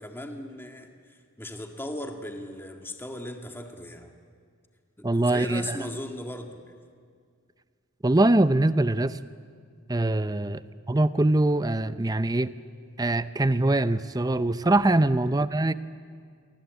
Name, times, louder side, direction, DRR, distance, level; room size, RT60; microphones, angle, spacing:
voice 1, 0.0-4.1 5.0-6.7 10.3-10.5, left 1 dB, 10° left, 4 dB, 1.8 m, -38 dB
voice 2, 5.0-5.8 8.0-9.2 9.9-10.6 10.9-12.5 13.0-15.7, right 2 dB, 15° right, 14 dB, 0.6 m, -23 dB
28.0 x 23.5 x 8.3 m, 2.1 s
head